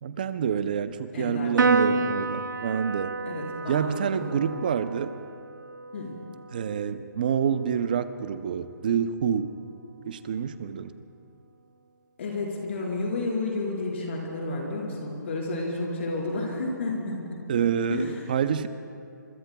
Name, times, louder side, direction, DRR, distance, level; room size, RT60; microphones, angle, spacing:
voice 1, 0.0-3.2 3.7-5.1 6.5-9.5 10.0-10.9 17.5-18.7, right 7 dB, 25° right, 12 dB, 0.5 m, -27 dB
voice 2, 1.1-1.5 1.9-2.1 3.2-4.5 5.9-6.2 12.2-17.4 17.9-18.2, left 2 dB, 40° left, -2 dB, 4.4 m, -31 dB
Piano, 1.6-8.3, right 4 dB, 75° right, 0.8 m, -30 dB
25.5 x 24.0 x 2.2 m, 2.4 s
hypercardioid pair, 170°, 11 cm